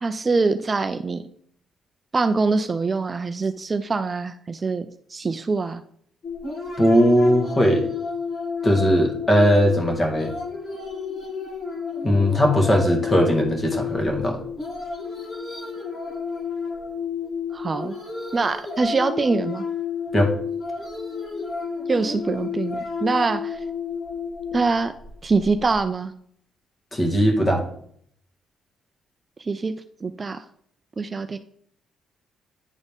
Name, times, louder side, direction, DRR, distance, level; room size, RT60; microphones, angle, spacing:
voice 1, 0.0-1.2 2.1-4.9 5.1-5.8 17.5-18.0 18.3-19.6 21.9-23.6 24.5-24.9 25.2-26.1 29.5-29.7 30.0-30.4 31.0-31.4, right 4 dB, 30° right, 9 dB, 0.4 m, -24 dB
sound 1, 6.2-25.8, left 5 dB, 55° left, 2.1 m, -31 dB
voice 2, 6.8-7.8 8.6-10.3 12.0-14.4 20.1-20.3 26.9-27.6, equal, 25° left, 2 dB, 1.8 m, -19 dB
9.9 x 4.1 x 3.5 m, 0.65 s
cardioid pair, 90°, 0 cm